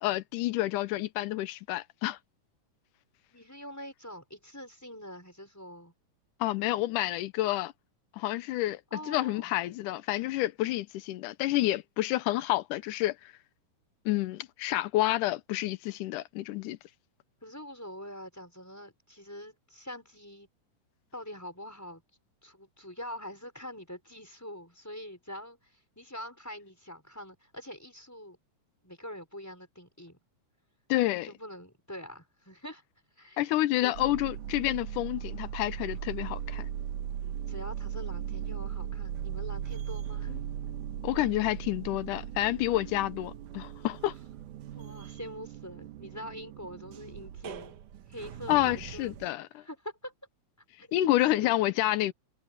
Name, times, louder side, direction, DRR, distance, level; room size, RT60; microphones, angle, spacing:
voice 1, 0.0-2.2 6.4-7.7 8.2-13.2 14.1-16.8 30.9-31.3 33.4-36.7 40.3-40.4 41.0-44.2 48.5-49.6 50.9-52.1, left 16 dB, 85° left, 2.3 m, -29 dB
voice 2, 3.3-5.9 8.9-9.5 17.4-20.5 21.1-22.0 22.4-28.4 28.8-30.2 31.2-32.8 33.2-33.9 37.5-40.3 42.7-42.8 44.7-47.8 48.1-49.3 49.6-50.1 50.8-51.5, equal, 5° left, 5.2 m, -44 dB
sound 1, 33.9-49.3, right 10 dB, 80° right, 2.7 m, -38 dB
omnidirectional pair, 3.6 m